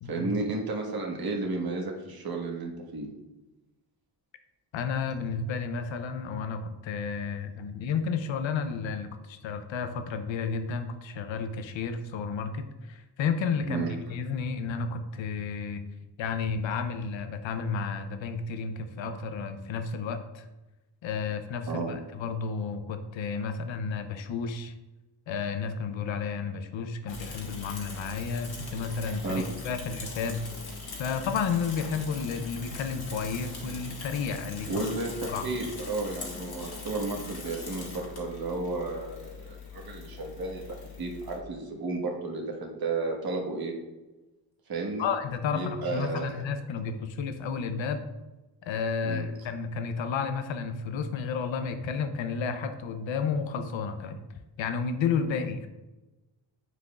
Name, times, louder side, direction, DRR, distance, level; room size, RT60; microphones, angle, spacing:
voice 1, 0.1-3.1 13.7-13.9 21.7-22.0 29.2-29.4 34.7-35.1 35.4-40.6 41.0-43.7 44.7-45.1 45.5-46.4 49.0-49.3, right 3 dB, 55° right, 0 dB, 1.5 m, -32 dB
voice 2, 4.7-13.8 14.1-15.8 16.2-20.5 21.0-24.7 25.3-30.4 31.0-34.9 35.3-35.4 45.0-48.0 48.6-54.2 54.6-55.7, left 5 dB, 85° left, 8 dB, 0.7 m, -32 dB
Bicycle / Mechanisms, 27.1-41.4, left 4 dB, 55° left, 1.7 m, -41 dB
9.7 x 4.8 x 2.4 m, 1.1 s
cardioid pair, 75°, 45 cm